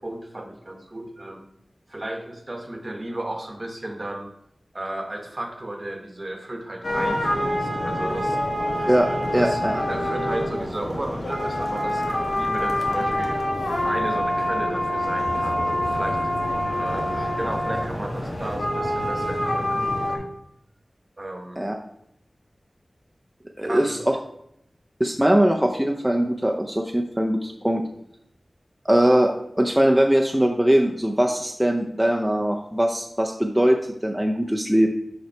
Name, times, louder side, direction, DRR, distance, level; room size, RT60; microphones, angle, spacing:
voice 1, 0.0-1.5 1.9-4.3 4.7-8.4 9.4-9.6 9.9-12.0 12.3-13.4 13.8-16.2 16.8-20.4 21.2-21.7 23.6-24.0, right 1 dB, 35° right, 5 dB, 1.0 m, -34 dB
sound 1, 6.8-20.2, left 1 dB, 70° left, 1.2 m, -26 dB
voice 2, 8.9-9.8 21.6-21.7 23.6-24.2 25.0-27.8 28.9-29.3 29.6-33.8 34.0-34.9, right 1 dB, 10° right, 2 dB, 0.5 m, -21 dB
5.3 x 5.1 x 4.5 m, 0.76 s
wide cardioid pair, 65°, 0 cm